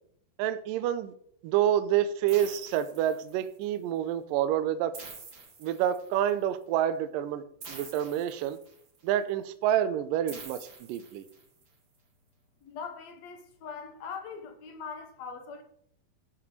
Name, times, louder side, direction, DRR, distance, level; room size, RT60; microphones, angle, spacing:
voice 1, 0.4-1.1 1.4-4.9 5.6-7.4 7.7-8.6 9.0-11.2, right 11 dB, 80° right, 2.1 m, -28 dB
sound 1, 2.3-3.6 4.9-6.3 7.6-9.0 10.3-11.6, right 4 dB, 45° right, 2.4 m, -47 dB
voice 2, 12.6-15.6, left 5 dB, 65° left, 1.8 m, -41 dB
12.5 x 7.5 x 3.2 m
omnidirectional pair, 4.3 m